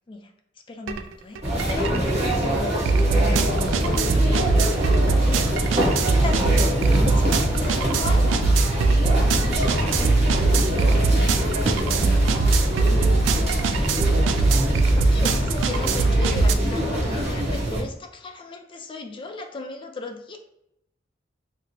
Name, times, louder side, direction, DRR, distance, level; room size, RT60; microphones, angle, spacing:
voice 1, 0.7-1.4 1.7-3.1 4.5-4.9 5.3-8.3 15.1-20.4, left 3 dB, 25° left, 4 dB, 0.4 m, -36 dB
sound 1, 0.9-1.0 1.3-16.5, right 3 dB, 85° right, 0.3 m, -21 dB
sound 2, 1.4-17.8, equal, 35° right, 0.8 m, -24 dB
sound 3, 3.7-16.5, left 2 dB, 75° left, 0.7 m, -41 dB
voice 2, 3.8-4.3 9.8-10.2 11.8-12.3 12.8-13.2 15.2-15.4, right 1 dB, 70° right, 2 dB, 0.7 m, -36 dB
4.2 x 2.0 x 2.6 m, 0.80 s
head